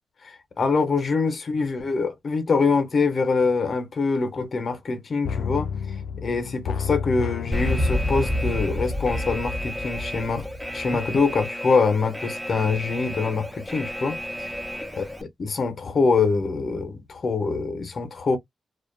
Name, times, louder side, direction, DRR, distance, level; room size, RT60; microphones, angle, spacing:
voice 1, 0.2-5.7 6.2-14.5 15.0-15.1 15.4-18.4, left 4 dB, 50° left, 0.7 m, -24 dB
sound 1, 5.2-9.9 10.3-10.4, left 7 dB, 90° left, 0.3 m, -32 dB
Alarm, 7.5-15.2, left 1 dB, 5° right, 0.4 m, -29 dB
2.4 x 2.2 x 2.4 m
cardioid pair, 80°, 0 cm